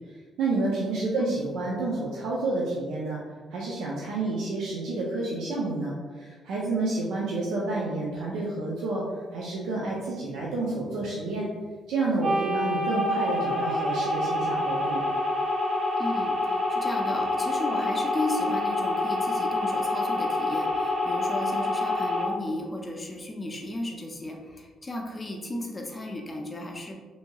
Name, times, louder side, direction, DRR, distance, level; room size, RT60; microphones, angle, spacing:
voice 1, 0.4-3.2 3.5-9.0 9.3-11.5 11.9-15.0, right 2 dB, 85° right, -5 dB, 0.4 m, -29 dB
sound 1, 12.2-22.3, left 1 dB, 45° right, 0.8 m, -27 dB
voice 2, 16.0-26.9, left 1 dB, 25° left, 1 dB, 0.4 m, -34 dB
2.9 x 2.6 x 2.2 m, 1.4 s
cardioid pair, 90°, 0 cm